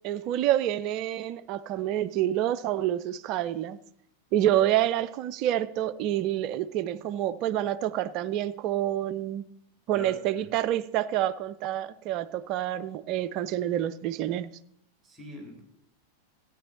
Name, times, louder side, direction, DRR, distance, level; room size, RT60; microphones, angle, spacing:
voice 1, 0.0-3.8 4.3-9.4 9.9-14.5, right 12 dB, 40° right, 0.5 m, -28 dB
voice 2, 9.9-10.5 15.0-15.6, equal, 5° right, 3.6 m, -43 dB
14.0 x 8.9 x 4.1 m
figure-of-eight pair, 90°, 0 cm